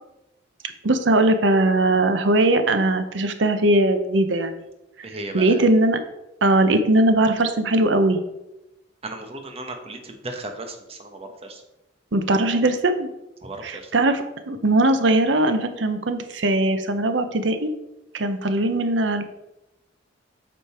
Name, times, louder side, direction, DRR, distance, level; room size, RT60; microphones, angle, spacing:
voice 1, 0.8-4.5 5.0-6.0 6.4-8.2 12.1-13.1 13.6-17.7 18.1-19.2, right 2 dB, 70° right, 8 dB, 0.8 m, -20 dB
voice 2, 5.0-5.7 9.0-11.6 13.4-13.9, right 2 dB, 30° right, 4 dB, 1.1 m, -35 dB
8.5 x 5.2 x 4.3 m, 0.92 s
head